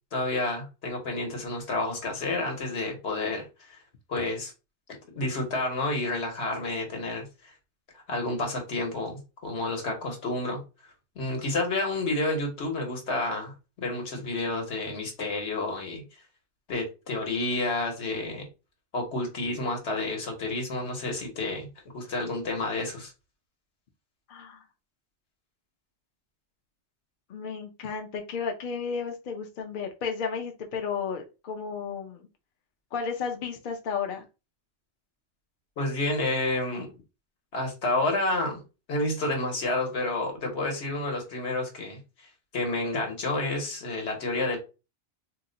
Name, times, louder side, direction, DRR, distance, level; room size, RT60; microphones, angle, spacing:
voice 1, 0.1-3.8 4.1-4.5 5.1-7.5 8.1-16.0 16.7-18.4 18.9-21.7 21.9-23.1 35.8-36.9 37.5-38.6 38.9-42.3 42.5-44.6, left 2 dB, 75° left, 1.3 m, -30 dB
voice 2, 24.3-24.6 27.3-32.3 32.9-34.2, left 6 dB, 60° left, 0.6 m, -33 dB
2.8 x 2.1 x 3.8 m
omnidirectional pair, 1.2 m